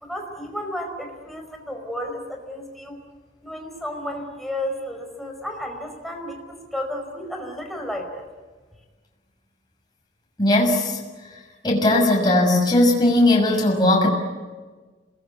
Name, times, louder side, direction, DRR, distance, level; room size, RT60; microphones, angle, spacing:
voice 1, 0.0-3.0 3.4-6.4 6.7-8.3, left 1 dB, ahead, 2 dB, 5.0 m, -32 dB
voice 2, 10.4-11.0 11.6-14.1, left 1 dB, 25° left, 0 dB, 6.3 m, -18 dB
28.0 x 21.0 x 9.3 m, 1.3 s
head